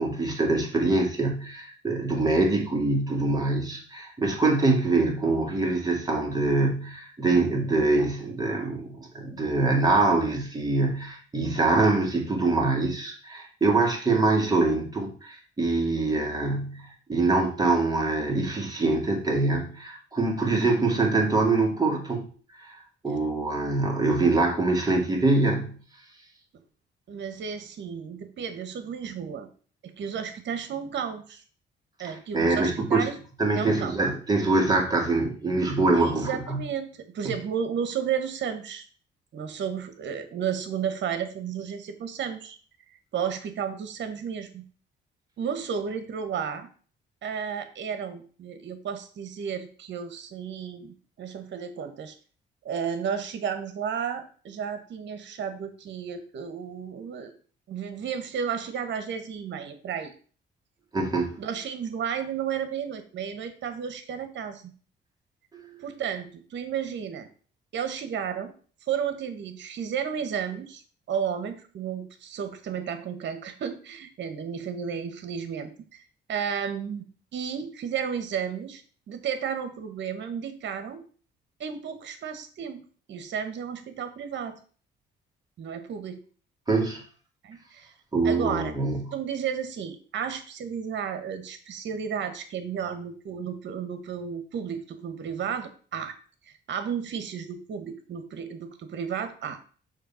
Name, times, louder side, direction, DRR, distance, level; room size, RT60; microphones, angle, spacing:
voice 1, 0.0-22.3 22.6-25.8 32.3-33.1 33.4-36.6 37.2-37.3 60.9-61.3 65.5-65.8 86.7-87.0 88.1-89.1, right 3 dB, 20° right, 0 dB, 2.1 m, -24 dB
voice 2, 27.1-29.5 29.8-31.4 32.0-33.1 33.5-34.0 35.9-38.8 39.3-42.6 43.1-44.6 45.4-46.7 47.2-52.1 52.6-57.3 57.7-60.1 61.4-64.7 65.8-67.3 67.7-68.5 68.9-70.8 71.1-76.0 76.3-77.0 77.3-78.8 79.1-81.0 81.6-82.8 83.1-84.6 85.6-86.2 87.4-87.9 88.2-88.7 89.1-96.1 96.4-99.6, right 7 dB, 65° right, 8 dB, 1.2 m, -33 dB
6.6 x 3.0 x 5.6 m, 0.42 s
cardioid pair, 90°, 20 cm